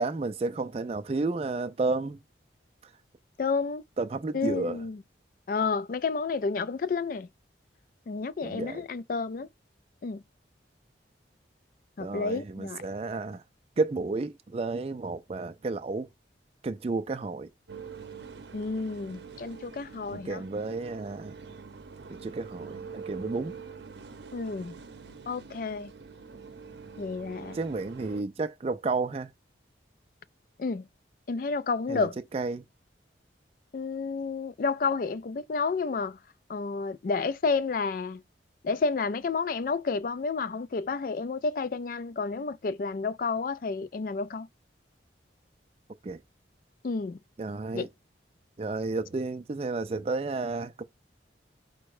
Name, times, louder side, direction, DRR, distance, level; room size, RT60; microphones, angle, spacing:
voice 1, 0.0-2.2 4.0-4.8 8.4-8.8 12.0-13.4 13.8-16.1 16.6-17.5 20.1-21.4 22.2-23.6 27.5-29.3 31.9-32.1 32.3-32.6 46.0-46.2 47.4-47.9 48.6-50.8, right 3 dB, 30° right, 0.4 m, -31 dB
voice 2, 3.4-3.8 4.3-5.0 5.5-7.3 8.1-9.5 10.0-10.2 12.0-12.8 18.5-20.4 24.3-24.8 25.3-25.9 27.0-27.6 30.6-30.9 31.3-32.2 33.7-36.2 36.5-38.2 38.6-44.5 46.8-47.2 47.7-47.9, left 4 dB, 50° left, 0.3 m, -30 dB
sound 1, 17.7-28.2, right 5 dB, 70° right, 0.7 m, -45 dB
5.1 x 2.1 x 4.7 m
head